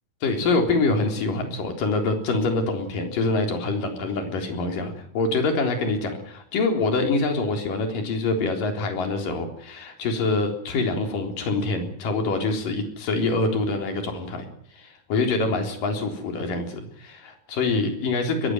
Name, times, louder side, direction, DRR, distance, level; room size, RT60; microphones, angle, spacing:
voice 1, 0.2-14.4 14.7-18.5, left 3 dB, 70° left, 4 dB, 5.4 m, -25 dB
21.5 x 17.0 x 9.2 m, 0.62 s
omnidirectional pair, 4.0 m